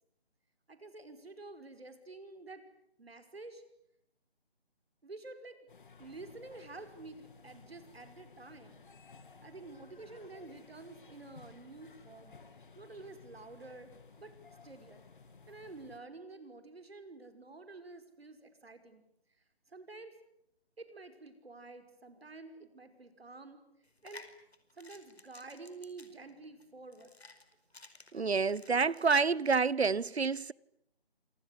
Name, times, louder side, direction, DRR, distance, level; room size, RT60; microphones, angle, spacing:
voice 1, 0.7-2.6 3.0-3.6 5.0-5.6 6.0-8.8 9.4-12.4 12.8-13.9 14.2-14.3 14.6-15.0 15.5-19.0 19.7-20.1 20.8-23.6 24.0-24.3 24.8-27.2, right 3 dB, 70° right, 5.6 m, -49 dB
sound 1, 5.7-16.0, left 4 dB, 55° left, 2.8 m, -57 dB
Opening Pill Bottle, 23.8-29.1, left 3 dB, 85° left, 4.9 m, -55 dB
voice 2, 28.1-30.5, right 5 dB, 90° right, 1.0 m, -28 dB
27.5 x 26.5 x 8.3 m
figure-of-eight pair, 165°, 31 cm